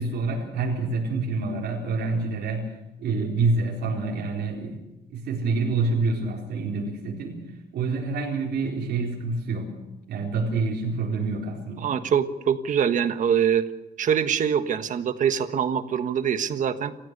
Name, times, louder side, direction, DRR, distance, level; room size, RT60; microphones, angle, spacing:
voice 1, 0.0-4.8 5.1-7.4 7.7-9.8 10.1-11.9, right 3 dB, 75° right, -2 dB, 4.3 m, -27 dB
voice 2, 11.8-13.6 14.0-16.9, right 8 dB, 50° right, 9 dB, 1.5 m, -24 dB
28.0 x 15.0 x 6.8 m, 0.97 s
cardioid pair, 145°, 17 cm